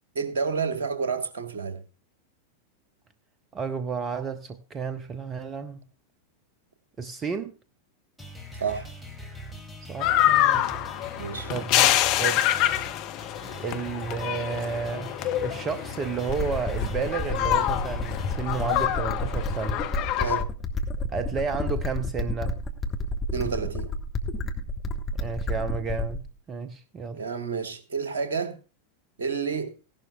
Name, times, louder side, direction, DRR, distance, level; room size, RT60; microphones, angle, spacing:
voice 1, 0.1-1.8 8.6-8.9 11.1-11.5 20.2-20.5 23.3-23.9 27.1-28.6 29.2-29.8, right 5 dB, 65° right, 1.5 m, -29 dB
voice 2, 3.5-5.8 7.0-7.5 9.9-10.8 11.0-11.2 11.5-12.4 13.6-19.8 21.1-22.6 25.2-27.2, right 5 dB, 25° right, 0.7 m, -32 dB
sound 1, 8.2-18.8, equal, ahead, 2.3 m, -42 dB
sound 2, 10.0-20.4, left 13 dB, 40° left, 0.8 m, -26 dB
sound 3, 16.3-26.3, left 1 dB, 20° left, 1.3 m, -30 dB
16.0 x 11.5 x 2.3 m
figure-of-eight pair, 90°, 0 cm